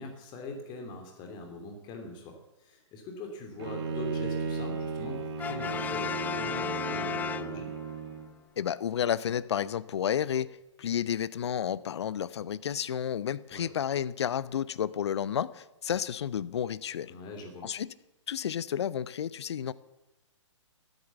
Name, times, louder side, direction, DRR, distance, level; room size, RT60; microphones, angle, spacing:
voice 1, 0.0-7.7 13.5-13.7 17.1-17.7, left 2 dB, 30° left, 4 dB, 2.9 m, -42 dB
Bowed string instrument, 3.6-8.3, right 5 dB, 55° right, 2.3 m, -35 dB
Brass instrument, 5.4-8.0, left 8 dB, 10° left, 0.5 m, -34 dB
voice 2, 8.6-17.1 17.6-17.9 18.3-19.7, left 9 dB, 60° left, 18 dB, 0.8 m, -31 dB
13.5 x 13.5 x 7.2 m, 0.98 s
figure-of-eight pair, 120°, 16 cm